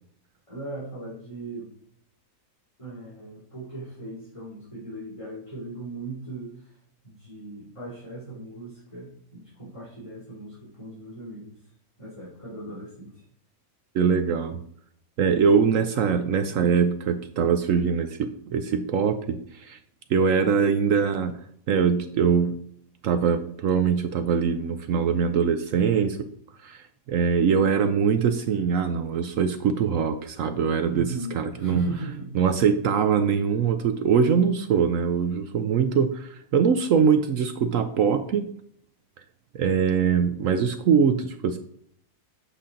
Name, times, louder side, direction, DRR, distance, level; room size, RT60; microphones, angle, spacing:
voice 1, 0.5-1.7 2.8-6.8 7.0-11.6 12.0-13.2 30.9-32.7, right 2 dB, 20° left, -9 dB, 3.1 m, -38 dB
voice 2, 13.9-14.6 15.2-19.8 20.1-21.4 21.7-22.6 23.0-26.2 26.6-31.1 31.3-31.9 32.4-38.5 39.5-41.6, right 6 dB, 65° right, 9 dB, 0.8 m, -23 dB
8.2 x 5.7 x 3.8 m, 0.66 s
omnidirectional pair, 1.8 m